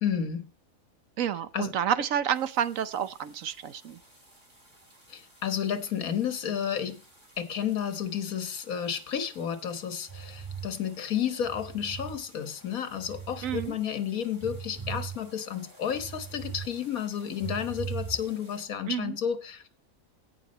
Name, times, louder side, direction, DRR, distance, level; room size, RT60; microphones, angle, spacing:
voice 1, 0.0-0.4 1.5-1.7 5.1-7.0 7.4-19.7, left 8 dB, 85° left, 1.7 m, -31 dB
voice 2, 1.2-4.0 13.4-13.8 18.9-19.2, right 9 dB, 70° right, 1.2 m, -29 dB
sound 1, 2.3-18.7, right 1 dB, 35° right, 4.3 m, -58 dB
sound 2, 10.1-12.2 12.6-13.7 14.1-16.7 17.0-18.5, right 7 dB, 15° right, 3.7 m, -40 dB
17.0 x 5.9 x 4.2 m
omnidirectional pair, 1.5 m